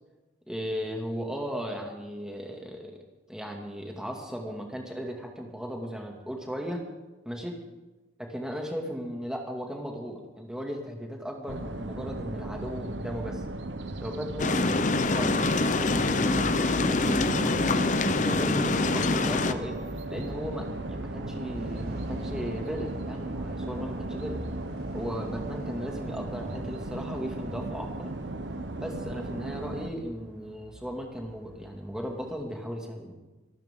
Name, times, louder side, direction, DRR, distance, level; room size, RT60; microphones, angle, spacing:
voice 1, 0.5-3.0 3.3-6.8 7.2-7.6 8.2-13.4 14.0-17.9 18.2-19.8 20.1-24.4 24.9-28.1 28.8-33.1, equal, 5° right, 1 dB, 2.3 m, -36 dB
sound 1, 11.5-29.9, right 2 dB, 85° right, 1.0 m, -36 dB
sound 2, 14.4-19.5, left 3 dB, 45° left, 0.7 m, -25 dB
Truck / Alarm, 15.1-32.4, equal, 65° right, 5.5 m, -44 dB
25.5 x 12.5 x 3.8 m, 1.2 s
head